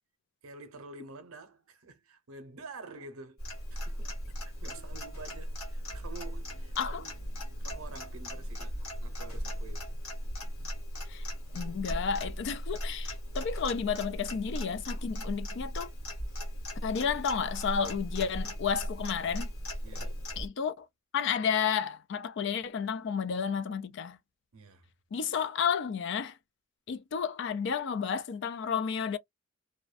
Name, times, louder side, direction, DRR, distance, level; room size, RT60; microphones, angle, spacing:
voice 1, 0.4-3.4 3.7-10.0 19.8-20.2 24.5-24.9, right 3 dB, 80° right, 0.7 m, -49 dB
Clock, 3.4-20.5, equal, 85° left, 1.4 m, -37 dB
voice 2, 11.5-15.9 16.8-19.5 20.4-20.9 21.1-24.2 25.1-26.4 26.9-29.2, left 6 dB, 55° left, 0.3 m, -31 dB
2.4 x 2.1 x 2.4 m
head